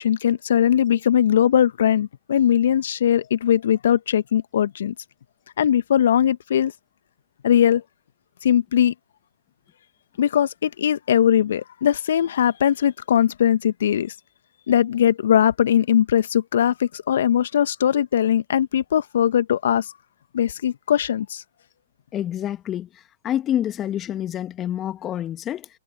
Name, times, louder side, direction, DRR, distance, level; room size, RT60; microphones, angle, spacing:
voice 1, 0.0-4.9 5.6-6.7 7.4-7.8 8.4-8.9 10.2-14.1 14.7-19.9 20.3-21.4, left 10 dB, 60° left, 1.5 m, -20 dB
voice 2, 22.1-22.9 23.2-25.7, left 11 dB, 25° left, 1.5 m, -27 dB
figure-of-eight pair, 120°, 0 cm